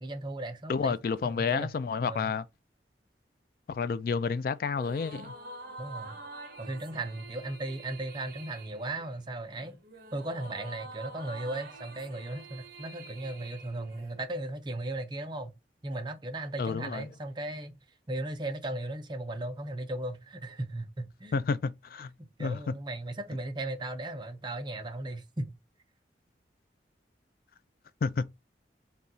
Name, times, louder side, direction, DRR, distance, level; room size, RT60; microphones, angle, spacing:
voice 1, 0.0-1.0 1.2-1.7 2.0-2.3 5.8-6.2 6.6-9.8 10.1-15.5 15.8-17.7 18.1-21.4 22.2-25.6, right 2 dB, 25° right, 0.6 m, -36 dB
voice 2, 0.7-2.5 3.7-5.3 16.6-17.1 21.3-22.1 22.4-22.7 28.0-28.2, left 5 dB, 55° left, 0.3 m, -30 dB
sound 1, 4.7-14.4, right 2 dB, 55° right, 0.9 m, -47 dB
4.1 x 2.3 x 3.7 m
head